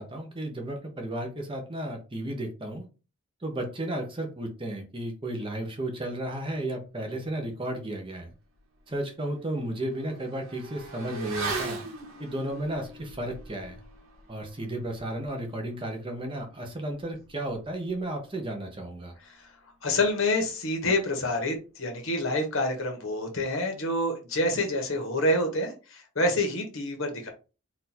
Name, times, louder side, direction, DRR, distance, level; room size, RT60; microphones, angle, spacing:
voice 1, 0.0-2.8 3.4-8.3 8.9-11.8 12.2-13.8 14.3-19.1, right 1 dB, 25° right, 3 dB, 0.9 m, -33 dB
Motorcycle / Accelerating revving vroom, 8.3-8.4 8.8-18.8 19.0-19.2, right 3 dB, 70° right, 1.9 m, -41 dB
voice 2, 19.8-27.3, left 1 dB, 60° left, 4 dB, 1.3 m, -27 dB
4.3 x 2.7 x 4.3 m, 0.32 s
head